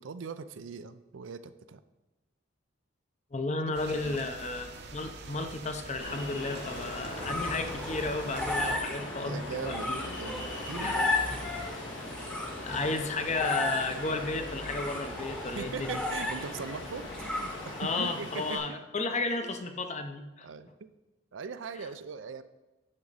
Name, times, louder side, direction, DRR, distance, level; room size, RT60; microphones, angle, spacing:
voice 1, 0.0-1.8 3.6-4.2 8.6-8.8 9.2-11.1 15.5-18.8 19.4-19.5 20.4-20.7 21.3-22.4, right 5 dB, 80° right, 12 dB, 0.5 m, -40 dB
voice 2, 3.3-10.0 10.8-11.0 12.6-16.0 17.8-20.5, left 3 dB, 35° left, 7 dB, 0.6 m, -33 dB
sound 1, 3.7-8.7, right 3 dB, 60° right, 0.9 m, -45 dB
Ocean, 6.0-18.6, left 2 dB, 90° left, 2.2 m, -41 dB
swing squeak, 6.8-18.0, left 2 dB, 5° left, 0.9 m, -35 dB
8.7 x 6.2 x 4.0 m, 1.1 s
head